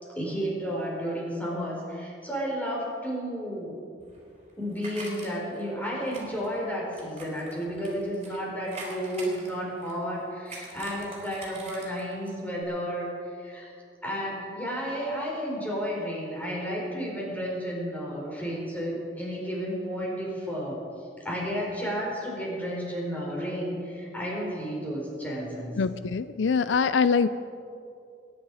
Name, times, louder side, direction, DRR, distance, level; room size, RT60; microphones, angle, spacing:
voice 1, 0.1-3.8 4.6-13.7 14.0-20.8 21.2-25.8, equal, 10° left, -4 dB, 4.4 m, -32 dB
sound 1, 4.0-5.6 6.1-8.4 8.7-10.1 10.5-12.3 12.6-12.7, right 2 dB, 35° right, 4.1 m, -44 dB
voice 2, 25.8-27.3, left 5 dB, 85° left, 13 dB, 0.5 m, -23 dB
23.0 x 10.5 x 4.9 m, 2.5 s
head